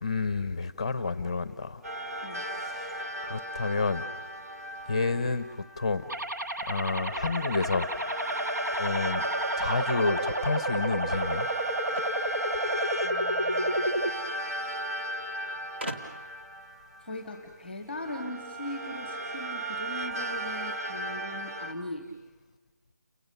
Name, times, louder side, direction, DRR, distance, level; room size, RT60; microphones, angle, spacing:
voice 1, 0.0-1.8 2.5-4.0 4.9-5.4 5.8-6.0 6.7-7.9 8.8-9.3 9.6-11.5, left 3 dB, 20° left, 13 dB, 0.7 m, -29 dB
sound 1, 1.8-6.0 6.9-17.4 17.9-21.7, right 1 dB, 55° right, 2.5 m, -35 dB
sound 2, 6.1-14.1, right 1 dB, 75° right, 1.9 m, -31 dB
sound 3, 11.9-13.3 14.4-14.5 14.7-14.8 15.8-16.4, right 1 dB, 35° right, 2.1 m, -40 dB
voice 2, 13.0-14.0 17.0-22.1, left 1 dB, ahead, 5 dB, 1.6 m, -40 dB
30.0 x 23.5 x 6.8 m, 1.2 s
figure-of-eight pair, 180°, 10 cm